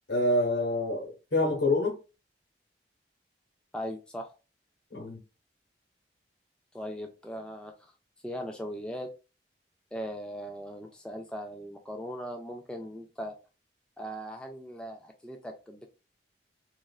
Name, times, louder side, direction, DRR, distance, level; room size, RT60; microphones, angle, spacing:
voice 1, 0.1-2.0 4.9-5.2, left 2 dB, 80° left, 1.1 m, -27 dB
voice 2, 3.7-4.3 6.7-7.9 8.2-9.1 9.9-13.3 14.0-15.9, equal, 5° left, 0.3 m, -39 dB
3.1 x 2.4 x 2.3 m
head